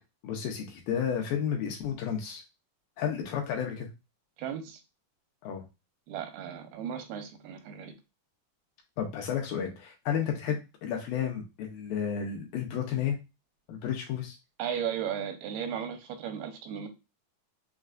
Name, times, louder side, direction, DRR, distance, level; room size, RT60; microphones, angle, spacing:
voice 1, 0.2-2.4 3.0-3.9 5.4-5.6 9.0-13.2 13.7-14.4, left 8 dB, 75° left, 2 dB, 2.3 m, -32 dB
voice 2, 4.4-4.8 6.1-7.9 14.6-16.9, right 8 dB, 85° right, 5 dB, 2.7 m, -35 dB
6.3 x 2.3 x 2.4 m, 0.26 s
omnidirectional pair, 4.4 m